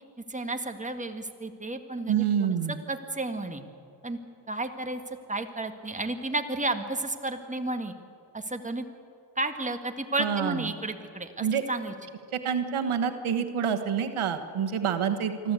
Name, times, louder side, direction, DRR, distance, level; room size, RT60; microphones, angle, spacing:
voice 1, 0.3-2.6 2.9-3.6 4.0-4.2 4.5-7.9 8.3-8.9 9.4-11.9, right 2 dB, 15° right, 6 dB, 1.7 m, -32 dB
voice 2, 2.1-2.8 10.2-10.7 11.4-11.6 12.3-15.5, right 7 dB, 90° right, 8 dB, 1.4 m, -27 dB
24.5 x 14.0 x 8.3 m, 2.5 s
cardioid pair, 70°, 48 cm